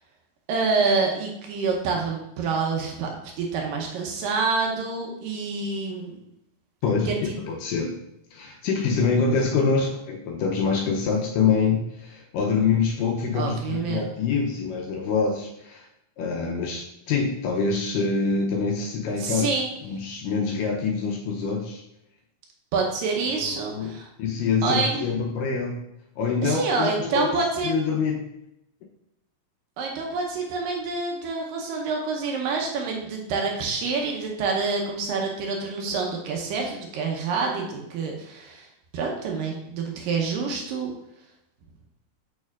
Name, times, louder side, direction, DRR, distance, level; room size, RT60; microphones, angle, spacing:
voice 1, 0.5-6.2 7.1-7.3 13.3-14.1 19.2-19.7 22.7-24.1 24.6-25.0 26.4-27.7 29.8-38.7 38.9-40.9, right 4 dB, 75° right, 1 dB, 2.3 m, -27 dB
voice 2, 6.8-8.0 8.3-15.9 16.2-19.5 19.9-21.8 23.7-25.8 26.2-28.2, left 5 dB, 80° left, 1 dB, 2.0 m, -25 dB
6.4 x 6.3 x 2.4 m, 0.83 s
omnidirectional pair, 4.3 m